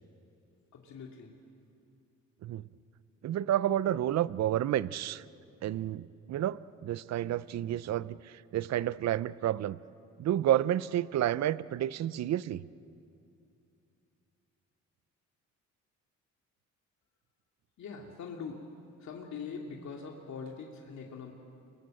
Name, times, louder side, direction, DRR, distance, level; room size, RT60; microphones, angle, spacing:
voice 1, 0.7-1.3 17.8-18.6 19.0-21.3, left 5 dB, 65° left, 0 dB, 2.7 m, -42 dB
voice 2, 3.2-5.2 5.6-9.8 10.2-12.6, right 12 dB, 60° right, 18 dB, 0.6 m, -30 dB
29.0 x 23.0 x 7.8 m, 2.6 s
cardioid pair, 90°, 30 cm